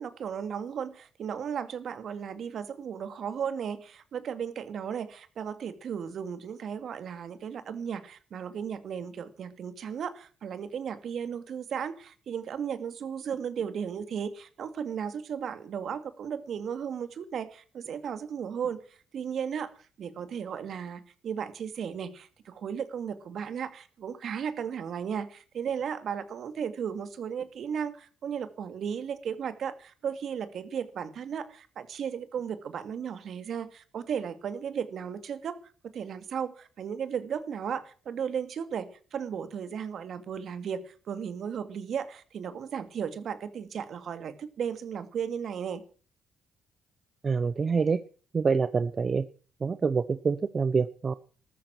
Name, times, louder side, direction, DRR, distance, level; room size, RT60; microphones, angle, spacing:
voice 1, 0.0-19.7 20.0-35.6 35.8-45.8, right 7 dB, 60° right, 11 dB, 2.2 m, -35 dB
voice 2, 47.2-48.0 48.3-49.3 49.6-51.1, right 5 dB, 40° right, 14 dB, 0.7 m, -26 dB
14.0 x 13.5 x 6.1 m, 0.39 s
cardioid pair, 90°, 0 cm